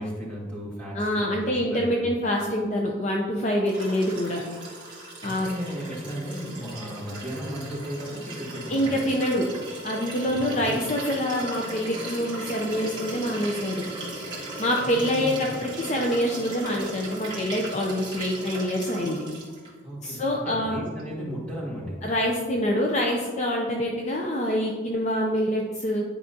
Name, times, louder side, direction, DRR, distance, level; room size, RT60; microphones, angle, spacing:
voice 1, 0.0-2.1 5.2-9.0 10.3-10.8 14.8-15.5 19.8-22.0, equal, 5° left, -6 dB, 1.8 m, -35 dB
voice 2, 0.9-4.4 5.2-5.5 8.7-9.5 9.8-13.8 14.6-19.3 20.0-20.8 22.0-26.0, equal, 35° left, 0 dB, 0.5 m, -26 dB
Liquid, 3.6-19.7 21.0-21.1, right 1 dB, 20° right, 1.6 m, -38 dB
10.0 x 4.8 x 2.8 m, 1.5 s
head